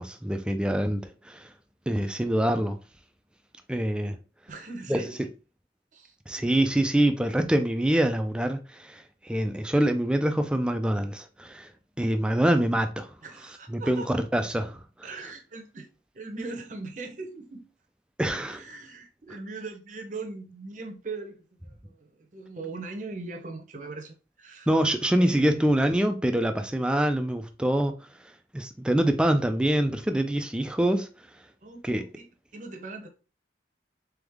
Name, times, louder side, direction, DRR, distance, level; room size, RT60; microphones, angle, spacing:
voice 1, 0.0-1.5 1.9-2.8 3.7-4.2 4.9-5.0 6.3-11.7 12.0-13.1 13.7-14.8 18.2-18.6 24.7-27.9 28.5-31.1 31.8-32.0, right 1 dB, 5° right, 0.3 m, -25 dB
voice 2, 4.5-5.2 5.9-6.2 13.2-14.1 15.0-15.9 16.1-17.7 18.3-24.7 25.1-25.6 31.6-31.8 32.2-33.1, right 3 dB, 45° right, 0.7 m, -40 dB
3.5 x 3.5 x 3.4 m
head